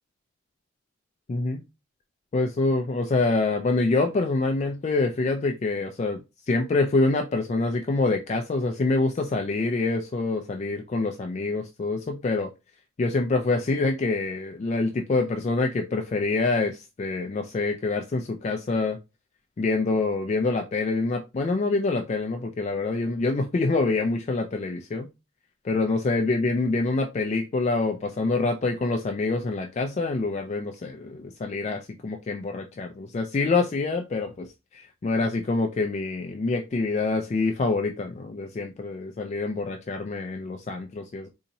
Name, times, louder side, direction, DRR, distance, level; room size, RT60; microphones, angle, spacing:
voice 1, 1.3-1.6 2.3-6.2 6.5-12.5 13.0-19.0 19.6-25.1 25.6-41.3, left 3 dB, 35° left, 4 dB, 0.3 m, -26 dB
4.0 x 2.8 x 2.6 m, 0.25 s
head